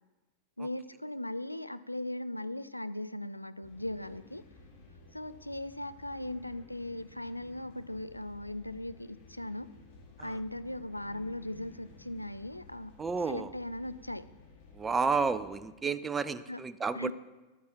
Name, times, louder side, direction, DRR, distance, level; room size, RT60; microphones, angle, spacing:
voice 1, 0.6-4.4 5.1-9.7 10.2-12.9 13.3-14.3 16.5-16.6 17.0-17.1, left 1 dB, 85° left, 14 dB, 0.3 m, -38 dB
sound 1, 3.6-15.7, left 3 dB, 45° left, 3.7 m, -55 dB
voice 2, 13.0-13.5 14.7-17.1, right 5 dB, 15° right, 14 dB, 0.4 m, -31 dB
11.0 x 8.3 x 3.5 m, 1.2 s
figure-of-eight pair, 90°, 0 cm